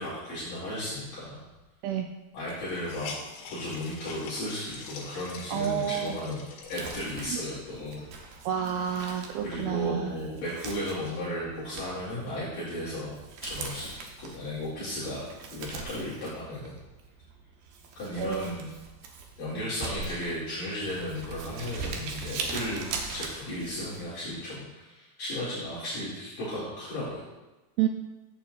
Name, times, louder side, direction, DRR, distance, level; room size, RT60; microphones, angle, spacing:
voice 1, 0.0-1.4 2.3-3.1 3.5-8.0 9.4-13.1 13.4-15.2 15.5-16.7 18.0-18.7 19.4-27.2, left 1 dB, 55° left, -10 dB, 3.8 m, -35 dB
Hiss, 1.6-1.7 1.9-2.0 2.4-7.5 8.0-8.1 8.5-9.9, left 5 dB, 75° left, 4.0 m, -45 dB
voice 2, 5.5-6.2 7.3-7.4 8.5-10.2 18.2-18.6 27.8-27.9, right 9 dB, 85° right, 5 dB, 2.2 m, -29 dB
Crumpling crinkling, 6.6-24.0, right 4 dB, 70° right, 2.5 m, -41 dB
13.5 x 8.6 x 2.4 m, 1.1 s
omnidirectional pair, 4.9 m